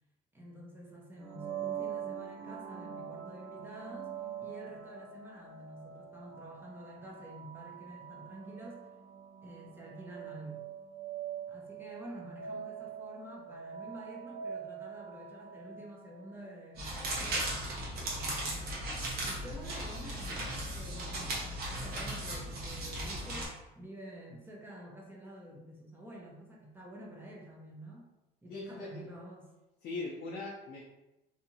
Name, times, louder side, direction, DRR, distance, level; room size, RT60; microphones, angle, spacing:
voice 1, 0.3-8.9 9.4-10.7 11.5-18.8 19.2-28.1 28.4-29.5, right 1 dB, 10° right, -3 dB, 0.8 m, -49 dB
sound 1, 1.2-16.8, right 8 dB, 80° right, 0.5 m, -44 dB
sound 2, 16.7-23.5, right 1 dB, 55° right, 0.9 m, -37 dB
voice 2, 28.5-28.9 29.8-30.8, left 3 dB, 50° left, -3 dB, 0.6 m, -40 dB
2.8 x 2.4 x 2.7 m, 0.99 s
cardioid pair, 110°, 19 cm